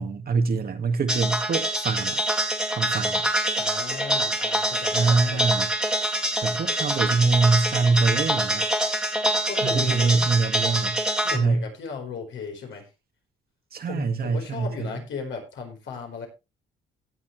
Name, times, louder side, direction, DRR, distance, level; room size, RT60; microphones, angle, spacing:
voice 1, 0.0-2.2 2.7-3.3 4.6-5.7 6.4-8.7 9.6-11.0 11.3-11.7 13.7-14.9, right 4 dB, 50° right, 1.8 m, -24 dB
sound 1, 1.1-11.4, right 1 dB, 5° right, 2.1 m, -25 dB
voice 2, 3.6-5.5 9.3-10.1 11.2-12.9 13.9-16.3, left 5 dB, 70° left, 4.4 m, -36 dB
17.0 x 7.1 x 3.2 m
cardioid pair, 90°, 20 cm